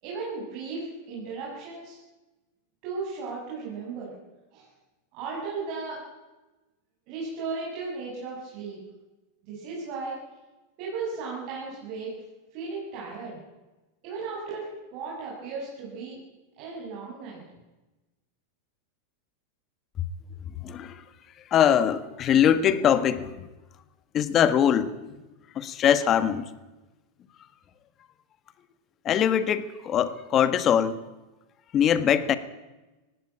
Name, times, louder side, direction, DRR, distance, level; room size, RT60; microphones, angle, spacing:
voice 1, 0.0-2.0 2.8-4.1 4.5-4.7 5.1-6.0 7.1-8.8 9.4-10.2 10.8-12.1 12.5-13.4 14.0-16.2 16.6-17.4, right 4 dB, 50° right, 7.2 m, -35 dB
voice 2, 20.6-21.0 21.5-23.4 24.1-24.9 25.5-26.5 29.0-31.0 31.7-32.4, left 9 dB, 35° left, 1.5 m, -22 dB
18.5 x 16.5 x 8.9 m
supercardioid pair, 125°, 0 cm